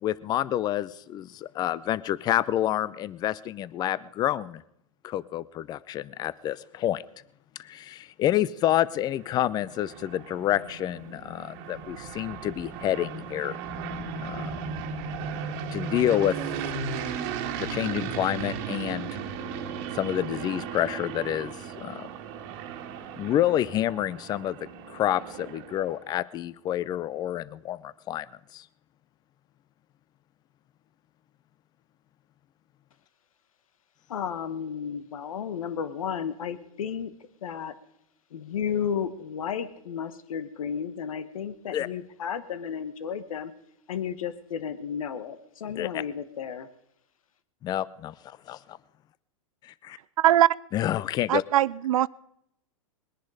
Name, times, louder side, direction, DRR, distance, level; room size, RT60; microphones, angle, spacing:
voice 1, 0.0-4.6 5.0-7.0 7.6-13.6 14.2-14.5 15.7-16.4 17.6-19.1 19.9-22.1 23.2-28.3 28.5-28.6 41.7-41.9 45.8-46.0 47.6-48.8 49.6-50.0 50.7-51.4, left 12 dB, 25° left, 0.5 m, -28 dB
sound 1, 8.8-26.0, right 6 dB, 45° right, 1.7 m, -36 dB
Thunder / Rain, 10.9-23.3, right 3 dB, 20° right, 2.1 m, -52 dB
voice 2, 34.1-37.1 37.4-37.7 38.3-43.5 43.9-46.7, left 7 dB, 80° left, 1.2 m, -33 dB
voice 3, 50.2-50.6 51.3-52.1, right 12 dB, 80° right, 0.4 m, -21 dB
21.0 x 10.5 x 4.9 m
hypercardioid pair, 130°, 17 cm